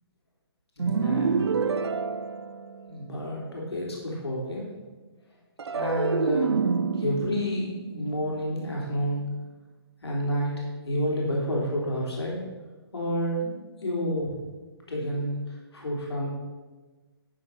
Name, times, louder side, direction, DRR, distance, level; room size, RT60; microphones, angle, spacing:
voice 1, 0.8-1.5 2.9-4.7 5.7-6.6 6.9-9.2 10.0-10.5 10.8-12.4 12.9-13.5 13.8-14.3 14.9-15.3 15.7-16.3, equal, 75° left, -3 dB, 3.2 m, -29 dB
sound 1, 0.8-3.2 5.6-8.9, right 5 dB, 80° right, 0.5 m, -28 dB
12.0 x 4.7 x 5.6 m, 1.3 s
figure-of-eight pair, 145°, 14 cm